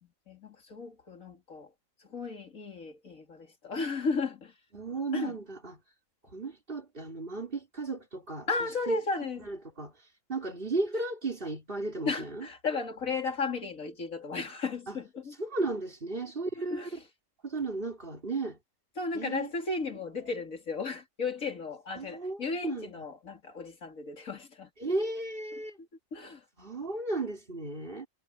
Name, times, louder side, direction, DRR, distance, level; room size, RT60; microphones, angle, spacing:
voice 1, 0.0-1.7 2.0-4.6 5.1-5.4 8.5-9.5 12.0-15.3 16.5-17.1 19.0-24.7 25.8-26.4, left 4 dB, 85° left, 3.2 m, -35 dB
voice 2, 4.7-5.7 6.3-8.5 8.9-9.0 9.5-9.9 10.3-12.5 14.9-15.0 15.4-16.8 17.4-18.6 19.1-19.5 22.0-23.1 24.8-25.8 26.6-28.1, right 3 dB, 40° right, 4.5 m, -34 dB
omnidirectional pair, 1.4 m